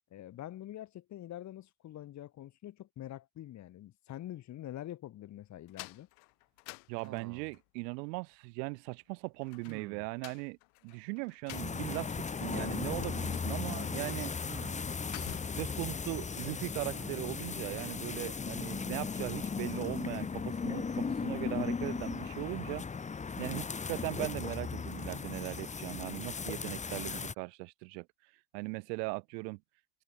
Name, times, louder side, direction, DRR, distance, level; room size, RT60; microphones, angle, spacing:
voice 1, 0.1-6.1, left 13 dB, 35° left, 1.1 m, -45 dB
sound 1, 5.7-7.6 9.4-12.3 12.6-12.7 13.1-13.7 14.2-14.4 14.7-15.7, left 39 dB, 75° left, 1.5 m, -50 dB
voice 2, 6.9-10.6 10.8-14.3 15.5-22.8 23.4-28.1 28.5-29.6, right 30 dB, 85° right, 1.1 m, -39 dB
sound 2, 7.0-7.6 9.7-10.1 11.8-12.1 14.4-14.9 16.7-17.2, right 11 dB, 35° right, 2.5 m, -50 dB
sound 3, 11.5-27.3, left 5 dB, 15° left, 1.2 m, -37 dB
cardioid pair, 130°, 48 cm